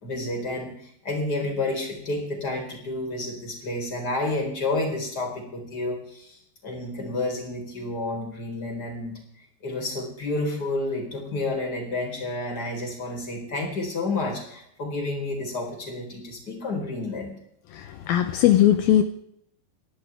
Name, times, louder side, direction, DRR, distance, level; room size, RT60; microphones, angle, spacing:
voice 1, 0.0-6.4 6.6-9.2 9.6-17.4, left 2 dB, 20° left, 1 dB, 4.2 m, -30 dB
voice 2, 17.7-19.0, left 12 dB, 80° left, 8 dB, 2.2 m, -19 dB
28.5 x 11.0 x 3.5 m, 0.69 s
omnidirectional pair, 5.2 m